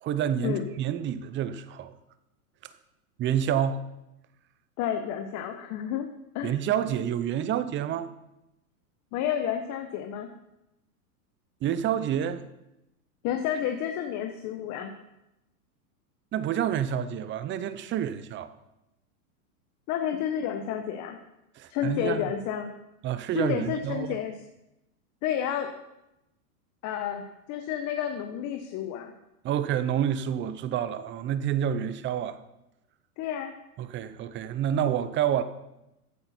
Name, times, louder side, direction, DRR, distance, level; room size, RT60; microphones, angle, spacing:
voice 1, 0.0-1.9 3.2-3.8 6.4-8.1 11.6-12.4 16.3-18.5 21.6-22.3 23.0-24.2 29.4-32.4 33.8-35.4, right 9 dB, 25° right, 0.8 m, -28 dB
voice 2, 4.8-6.1 6.3-6.5 9.1-10.3 13.2-14.9 19.9-21.2 21.7-22.7 23.3-24.3 25.2-25.7 26.8-29.1 33.2-33.5, left 9 dB, 40° left, 1.2 m, -30 dB
15.0 x 10.0 x 4.3 m
hypercardioid pair, 125°, 46 cm